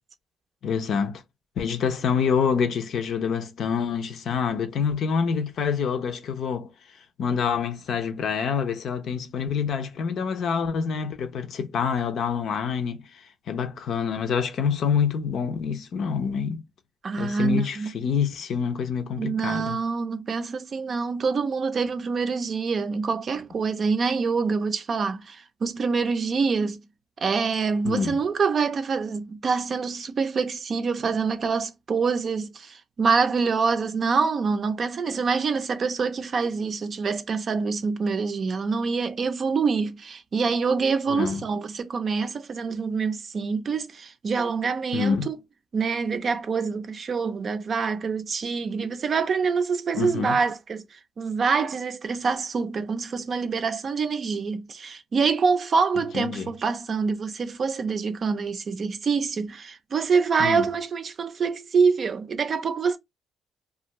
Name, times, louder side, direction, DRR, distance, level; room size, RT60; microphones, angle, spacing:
voice 1, 0.6-1.2 1.6-6.7 7.2-13.0 13.5-16.6 17.2-19.8 27.8-28.2 41.1-41.4 44.9-45.3 49.9-50.4 56.0-56.5 60.4-60.6, left 6 dB, 70° left, 0.5 m, -26 dB
voice 2, 17.0-17.9 19.2-26.8 27.2-45.4 45.7-63.0, right 5 dB, 50° right, 0.5 m, -26 dB
2.5 x 2.3 x 2.9 m
cardioid pair, 90°, 0 cm